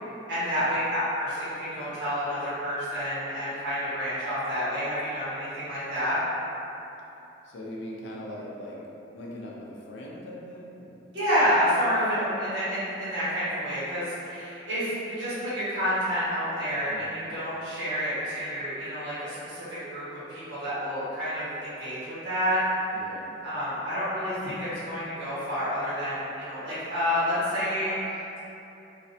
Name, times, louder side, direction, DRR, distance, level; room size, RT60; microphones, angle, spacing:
voice 1, 0.3-6.2 11.1-22.6 23.4-28.4, equal, 70° right, -13 dB, 1.2 m, -29 dB
voice 2, 7.4-8.8 9.1-11.0 16.9-17.2 22.9-23.4, left 1 dB, 75° left, -4 dB, 0.4 m, -40 dB
2.4 x 2.1 x 2.6 m, 2.9 s
head